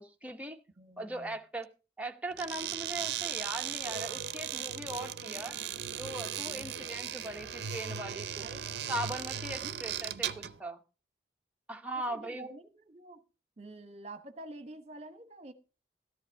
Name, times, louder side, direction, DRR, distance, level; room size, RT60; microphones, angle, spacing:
voice 1, 0.0-0.6 1.0-1.7 2.0-5.6 5.9-8.5 8.9-10.8 11.7-12.5, right 1 dB, 10° right, 4 dB, 0.9 m, -39 dB
voice 2, 0.8-1.4 6.4-6.7 7.1-7.3 8.4-8.7 9.6-9.8 12.1-13.2 13.6-15.5, right 2 dB, 35° right, 10 dB, 1.1 m, -48 dB
sound 1, 2.3-10.6, right 9 dB, 65° right, 0.6 m, -37 dB
14.0 x 11.0 x 3.5 m, 0.31 s
head